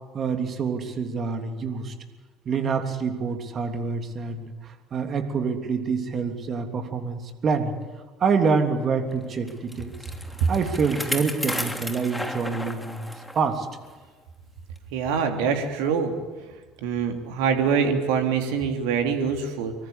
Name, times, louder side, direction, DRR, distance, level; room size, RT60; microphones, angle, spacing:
voice 1, 0.1-1.9 2.4-7.7 8.2-9.9 10.5-13.7, right 5 dB, 40° right, 6 dB, 3.2 m, -26 dB
Bicycle, 9.5-13.4 13.8-13.9 14.8-14.9, left 1 dB, 5° left, 3.1 m, -33 dB
voice 2, 14.9-16.1 16.8-19.7, right 6 dB, 60° right, 5 dB, 3.2 m, -24 dB
25.5 x 23.5 x 8.6 m, 1.3 s
figure-of-eight pair, 55°, 0 cm